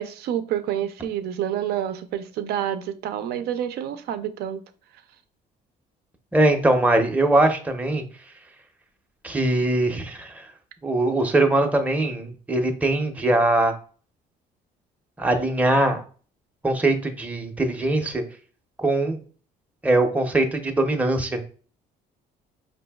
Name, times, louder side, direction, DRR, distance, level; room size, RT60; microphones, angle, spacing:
voice 1, 0.0-4.6, right 10 dB, 70° right, 0.5 m, -28 dB
voice 2, 6.3-8.0 9.2-10.5 10.8-13.7 15.2-16.0 16.6-18.2 18.8-19.2 19.8-21.4, right 2 dB, 10° right, 0.6 m, -21 dB
5.2 x 2.6 x 2.3 m
cardioid pair, 110°, 17 cm